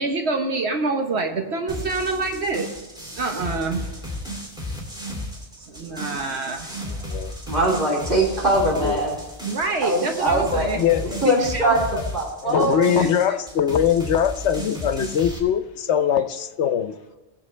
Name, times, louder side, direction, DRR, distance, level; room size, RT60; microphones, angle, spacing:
voice 1, 0.0-4.1 5.6-7.3 9.4-10.8 11.2-11.8 13.0-13.4, right 3 dB, 70° right, 1.4 m, -27 dB
sound 1, 1.7-15.4, left 1 dB, 5° right, 2.8 m, -34 dB
voice 2, 7.5-9.1 9.8-10.7 11.2-13.0, right 1 dB, 50° right, 3.4 m, -22 dB
voice 3, 10.8-11.2 12.4-16.9, left 9 dB, 80° left, 1.0 m, -22 dB
20.5 x 7.5 x 3.3 m
omnidirectional pair, 1.1 m